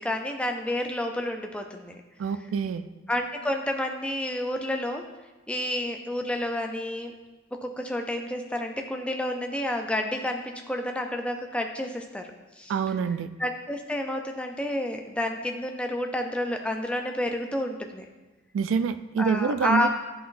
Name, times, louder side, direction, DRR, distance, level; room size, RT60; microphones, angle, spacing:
voice 1, 0.0-1.9 3.1-5.0 5.5-7.1 7.6-12.3 12.6-12.7 13.4-18.1 19.2-19.9, left 1 dB, 5° left, 3 dB, 0.4 m, -30 dB
voice 2, 2.2-2.9 12.7-13.3 18.5-19.9, right 6 dB, 80° right, 12 dB, 0.3 m, -26 dB
10.0 x 3.9 x 2.5 m, 1.2 s
head